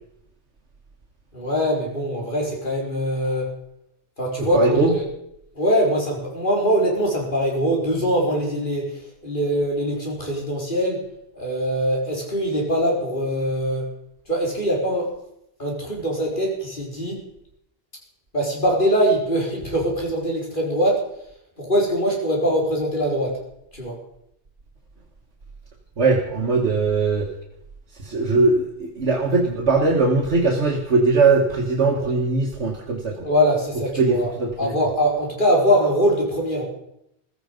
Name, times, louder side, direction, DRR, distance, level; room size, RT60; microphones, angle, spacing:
voice 1, 1.3-3.5 4.2-5.0 5.6-11.0 11.4-13.9 14.3-15.1 15.6-17.2 18.3-21.1 21.6-23.4 23.7-23.9 33.2-34.3 34.6-36.6, equal, 50° left, -2 dB, 4.4 m, -22 dB
voice 2, 4.5-5.0 26.0-27.3 28.0-33.3 34.0-34.7, right 3 dB, 90° right, -1 dB, 2.0 m, -20 dB
15.5 x 14.0 x 5.3 m, 0.77 s
omnidirectional pair, 1.1 m